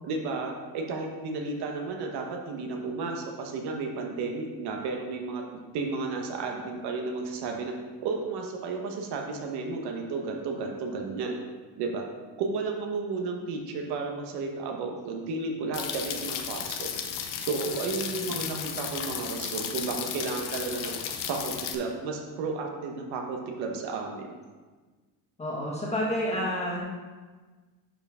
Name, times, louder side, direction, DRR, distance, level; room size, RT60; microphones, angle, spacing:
voice 1, 0.0-7.7 8.0-11.4 11.8-12.0 12.4-16.9 17.4-20.9 21.3-24.3, right 4 dB, 55° right, 2 dB, 1.2 m, -33 dB
sound 1, 15.7-21.7, left 8 dB, 45° left, 0.8 m, -34 dB
voice 2, 18.1-18.6 25.4-26.8, equal, 15° left, -4 dB, 1.6 m, -30 dB
11.5 x 4.7 x 3.6 m, 1.4 s
cardioid pair, 160°, 46 cm